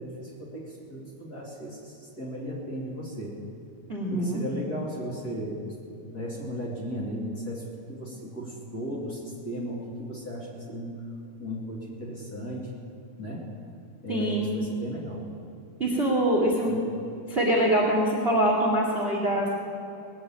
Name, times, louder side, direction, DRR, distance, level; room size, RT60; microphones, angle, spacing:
voice 1, 0.0-3.4 4.1-5.6 6.0-11.0 11.4-12.7 13.2-13.5 14.0-15.2 16.7-16.8, equal, 30° left, -4 dB, 2.7 m, -36 dB
voice 2, 3.9-4.4 14.1-14.6 15.8-16.7 17.3-19.6, right 1 dB, 20° right, -2 dB, 1.8 m, -24 dB
19.0 x 7.7 x 8.7 m, 2.7 s
omnidirectional pair, 3.5 m